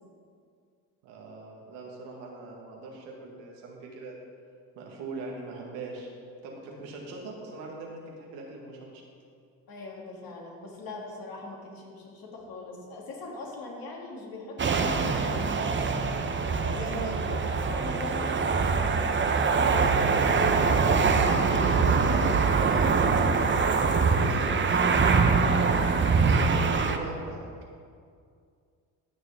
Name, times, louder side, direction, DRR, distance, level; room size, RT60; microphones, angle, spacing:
voice 1, 1.0-4.2 4.8-6.1 6.4-9.0 24.1-25.7 26.1-27.4, right 3 dB, 80° right, -1 dB, 1.9 m, -41 dB
voice 2, 9.7-16.1 16.4-18.6 19.2-22.9, left 2 dB, 55° left, -2 dB, 2.7 m, -40 dB
sound 1, 14.6-27.0, right 4 dB, 25° right, 0.8 m, -24 dB
15.5 x 6.5 x 3.6 m, 2.2 s
supercardioid pair, 70°, 42 cm